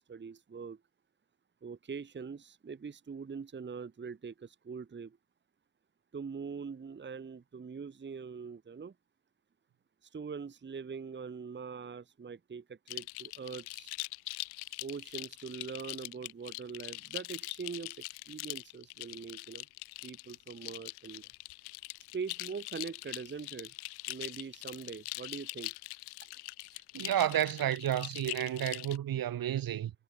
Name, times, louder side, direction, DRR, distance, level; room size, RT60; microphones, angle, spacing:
voice 1, 0.1-0.8 1.6-5.2 6.1-8.9 10.0-13.9 14.8-19.7 20.0-21.3 22.1-23.7 24.1-25.7, right 5 dB, 25° right, 1.3 m, -43 dB
sound 1, 12.9-29.0, left 25 dB, 60° left, 0.6 m, -43 dB
voice 2, 26.9-29.9, right 11 dB, 50° right, 1.7 m, -31 dB
figure-of-eight pair, 45°, 44 cm